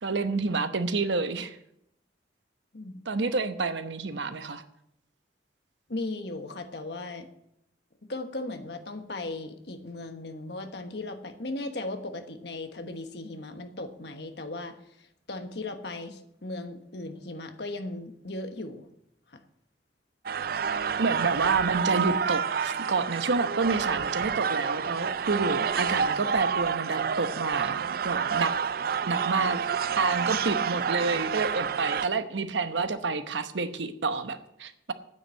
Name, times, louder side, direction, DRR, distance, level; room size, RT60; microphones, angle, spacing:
voice 1, 0.0-1.6 3.1-4.6 21.0-28.6 29.1-29.6 29.9-34.9, right 4 dB, 80° right, 10 dB, 0.9 m, -29 dB
voice 2, 2.7-3.1 5.9-7.3 8.0-18.9 19.3-19.4, left 2 dB, 65° left, 7 dB, 1.2 m, -37 dB
sound 1, 20.3-32.1, right 6 dB, 55° right, 0.4 m, -29 dB
9.6 x 8.4 x 7.9 m, 0.78 s
head